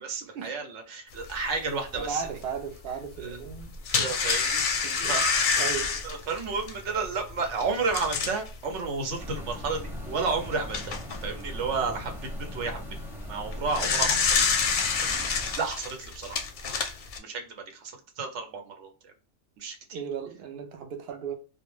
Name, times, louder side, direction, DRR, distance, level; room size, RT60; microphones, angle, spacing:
voice 1, 0.0-2.3 3.2-3.4 3.9-5.6 6.0-11.0 11.2-12.8 13.3-14.4 14.6-16.5 17.2-19.1 19.6-20.0, right 4 dB, 90° right, 1.0 m, -32 dB
sound 1, 1.3-1.4 1.9-2.0 3.5-8.5 9.1-9.2 9.6-9.7 10.4-11.2 13.4-17.2, left 5 dB, 60° left, 0.6 m, -27 dB
voice 2, 2.0-3.7 4.8-5.2 5.6-6.0 13.9-14.2 19.9-21.4, right 6 dB, 65° right, 0.7 m, -36 dB
sound 2, 9.2-15.6, equal, 5° right, 0.4 m, -39 dB
2.2 x 2.1 x 3.0 m
omnidirectional pair, 1.2 m